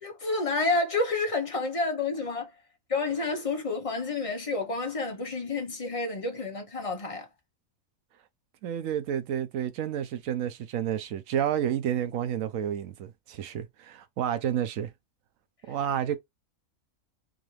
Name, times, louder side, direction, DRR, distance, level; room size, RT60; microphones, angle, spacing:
voice 1, 0.0-2.5 2.9-7.3, left 3 dB, 30° left, 0.9 m, -29 dB
voice 2, 8.6-14.9 15.7-16.2, right 10 dB, 80° right, 1.0 m, -30 dB
3.9 x 2.8 x 3.1 m
omnidirectional pair, 1.4 m